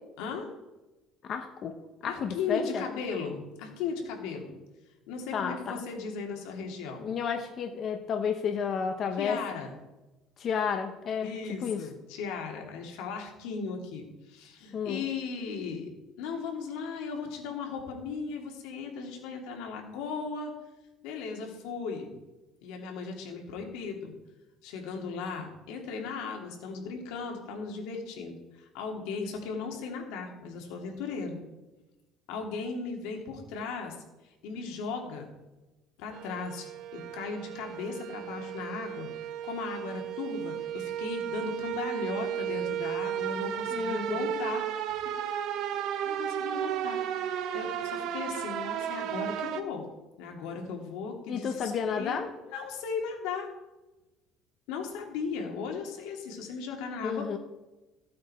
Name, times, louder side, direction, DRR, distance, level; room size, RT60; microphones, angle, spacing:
voice 1, 0.2-0.5 2.0-4.6 5.1-7.0 9.2-9.7 11.2-15.9 16.2-20.5 21.0-22.1 22.6-24.1 24.6-31.4 32.3-33.9 34.4-35.3 36.0-39.1 39.4-44.6 45.8-47.0 47.3-49.9 50.2-53.5 54.7-57.3, left 5 dB, 90° left, 1 dB, 2.6 m, -37 dB
voice 2, 1.2-1.8 2.0-2.8 5.3-5.8 7.0-9.4 10.4-11.3 11.6-11.9 14.7-15.0 43.7-44.3 51.3-52.3 57.0-57.4, left 6 dB, 40° left, 5 dB, 0.9 m, -31 dB
sound 1, 36.1-49.6, right 10 dB, 60° right, 1.0 m, -34 dB
15.0 x 8.6 x 4.4 m, 1.1 s
cardioid pair, 145°, 0 cm